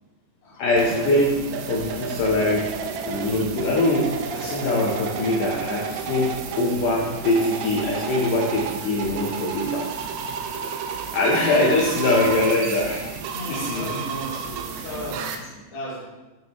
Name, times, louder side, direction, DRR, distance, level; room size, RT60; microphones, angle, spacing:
voice 1, 0.6-2.7 3.0-9.9 10.5-10.8 11.1-13.1 13.5-14.0, left 2 dB, 70° left, -4 dB, 2.0 m, -23 dB
sound 1, 0.8-15.4, right 6 dB, 85° right, 2.2 m, -32 dB
voice 2, 13.3-16.0, equal, 25° left, -7 dB, 1.9 m, -35 dB
9.5 x 7.3 x 3.2 m, 1.1 s
omnidirectional pair, 5.2 m